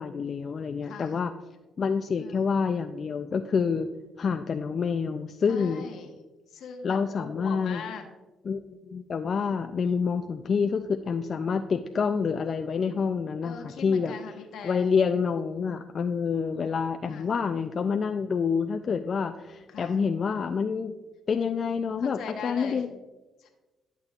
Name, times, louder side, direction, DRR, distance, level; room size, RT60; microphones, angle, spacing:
voice 1, 0.0-1.3 1.8-3.9 4.2-5.9 6.8-7.8 8.5-14.1 14.6-20.9 21.3-22.9, left 5 dB, 50° left, 7 dB, 0.3 m, -27 dB
voice 2, 0.8-1.2 2.1-2.4 5.5-6.1 6.5-8.0 13.4-14.9 17.1-17.3 19.7-20.0 22.0-22.8 23.4-23.5, left 6 dB, 75° left, 4 dB, 1.0 m, -40 dB
10.5 x 6.7 x 2.4 m, 1.2 s
cardioid pair, 90°, 0 cm